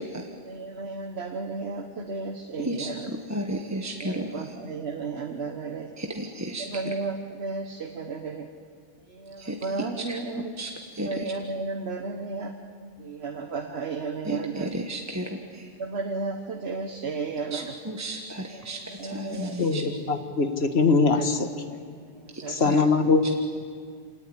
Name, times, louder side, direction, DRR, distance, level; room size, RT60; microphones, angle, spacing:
voice 1, 0.5-3.1 4.0-5.9 6.6-8.5 9.1-10.5 11.0-12.5 13.0-14.7 15.8-17.7 19.0-19.5 21.1-21.3 22.4-22.8, right 4 dB, 80° right, 4 dB, 1.5 m, -33 dB
voice 2, 2.6-4.5 6.0-6.9 9.4-11.3 14.2-15.7 17.5-19.8 22.3-22.7, right 1 dB, 15° right, 2 dB, 1.3 m, -34 dB
voice 3, 19.6-21.5 22.5-23.4, left 4 dB, 80° left, 8 dB, 1.7 m, -22 dB
26.5 x 18.5 x 9.8 m, 2.1 s
omnidirectional pair, 1.1 m